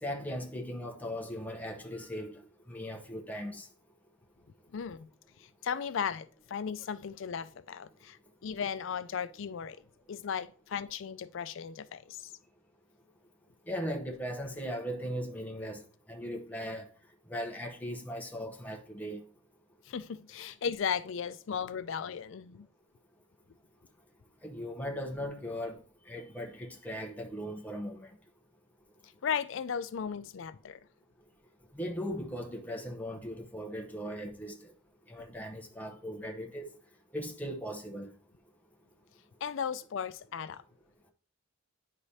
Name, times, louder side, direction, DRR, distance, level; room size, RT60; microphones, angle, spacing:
voice 1, 0.0-2.3 2.7-3.7 13.7-15.8 16.1-16.9 17.3-19.2 24.4-25.8 26.1-28.1 31.7-34.7 35.1-36.7 37.1-38.1, equal, 10° left, 0.8 m, -38 dB
voice 2, 4.7-5.1 5.4-9.8 10.1-12.3 19.9-22.7 29.2-30.8 39.4-40.6, left 7 dB, 70° left, 0.4 m, -36 dB
9.8 x 4.8 x 2.8 m
head